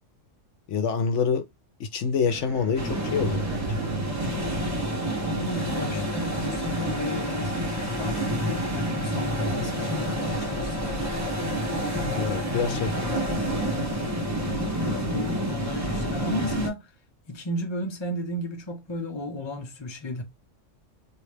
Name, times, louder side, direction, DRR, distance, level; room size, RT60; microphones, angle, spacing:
voice 1, 0.7-1.4 1.8-3.6 5.9-6.1 12.1-12.9, left 6 dB, 70° left, 0.9 m, -27 dB
sound 1, 2.3-5.8, right 3 dB, 75° right, 0.9 m, -34 dB
sound 2, 2.8-16.7, right 1 dB, 15° right, 1.2 m, -28 dB
voice 2, 4.0-4.3 5.2-7.5 8.0-11.1 11.9-13.2 14.5-16.9 17.3-20.2, left 1 dB, 25° left, 0.7 m, -34 dB
3.1 x 2.7 x 3.2 m
omnidirectional pair, 1.3 m